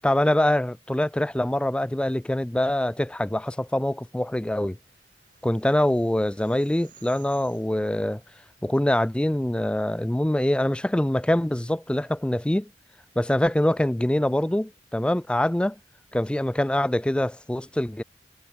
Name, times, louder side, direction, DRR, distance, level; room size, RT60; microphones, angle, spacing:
voice 1, 0.0-4.8 5.4-8.2 8.6-12.7 13.2-15.8 16.1-18.0, left 1 dB, 5° left, 0.3 m, -24 dB
sound 1, 4.4-9.7, right 6 dB, 45° right, 5.7 m, -57 dB
head